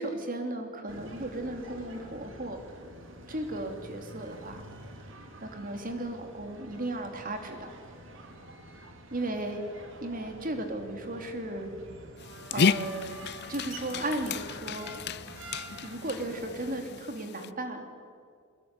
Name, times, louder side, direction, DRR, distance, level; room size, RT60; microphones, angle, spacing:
voice 1, 0.0-2.6 3.3-4.6 5.4-7.7 9.1-9.6 10.0-11.7 12.5-15.0 15.8-17.9, right 1 dB, 40° right, 5 dB, 3.1 m, -35 dB
sound 1, 0.9-16.8, right 2 dB, 65° right, 3.3 m, -47 dB
Dog, 12.2-17.5, left 6 dB, 50° left, 0.6 m, -33 dB
23.5 x 21.0 x 9.8 m, 2.3 s
head